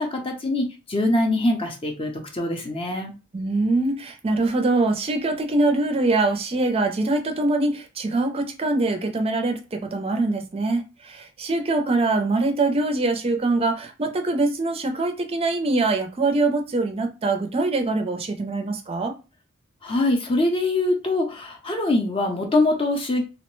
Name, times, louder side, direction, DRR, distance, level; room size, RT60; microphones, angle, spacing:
voice 1, 0.0-3.1 19.8-23.2, left 2 dB, 25° left, 0.6 m, -23 dB
voice 2, 3.3-19.1, right 2 dB, 30° right, 0.5 m, -23 dB
2.8 x 2.1 x 3.0 m
head